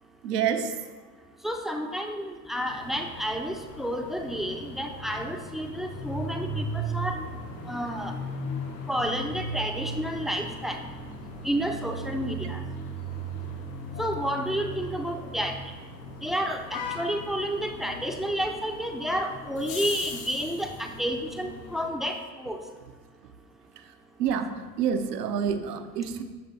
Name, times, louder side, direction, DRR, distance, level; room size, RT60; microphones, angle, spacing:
voice 1, 0.2-0.8 24.2-26.2, right 7 dB, 70° right, 9 dB, 0.7 m, -28 dB
voice 2, 1.4-7.2 7.7-8.1 8.9-10.8 11.4-12.6 14.0-15.6 16.2-22.6, equal, ahead, 4 dB, 0.5 m, -30 dB
sound 1, 2.6-21.9, right 1 dB, 80° left, 1.6 m, -38 dB
sound 2, 19.5-20.9, left 6 dB, 60° left, 1.5 m, -39 dB
11.0 x 6.6 x 2.7 m, 1.4 s
figure-of-eight pair, 70°, 50 cm